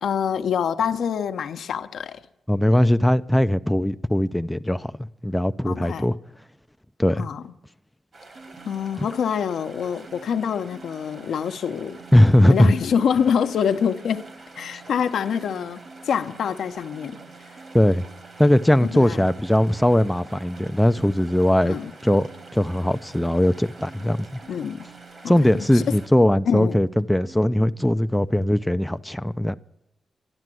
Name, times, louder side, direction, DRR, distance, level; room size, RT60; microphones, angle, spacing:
voice 1, 0.0-2.2 5.6-6.1 7.2-7.5 8.6-12.0 12.4-14.3 14.6-17.2 18.8-19.3 21.7-21.9 24.5-24.9 25.2-25.9 26.5-26.8, left 7 dB, 85° left, 0.8 m, -26 dB
voice 2, 2.5-6.2 7.0-7.2 12.1-12.7 17.7-18.0 18.4-21.8 22.0-24.3 25.3-29.5, left 1 dB, 5° left, 0.4 m, -19 dB
sound 1, 8.1-26.3, right 3 dB, 45° right, 1.8 m, -47 dB
sound 2, 8.3-27.9, right 4 dB, 65° right, 1.5 m, -49 dB
12.5 x 11.0 x 7.7 m
cardioid pair, 100°, 0 cm